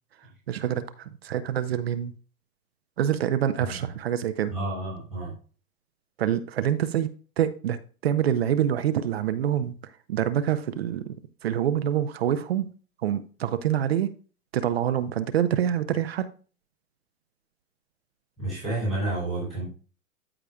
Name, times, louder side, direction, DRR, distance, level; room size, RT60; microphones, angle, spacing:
voice 1, 0.5-2.2 3.0-4.5 6.2-11.2 11.4-12.7 13.0-14.1 14.5-16.3, right 10 dB, 45° right, 0.6 m, -26 dB
voice 2, 4.5-5.3 18.4-19.7, right 2 dB, ahead, 0.3 m, -30 dB
13.5 x 5.1 x 2.2 m
hypercardioid pair, 160°, 43 cm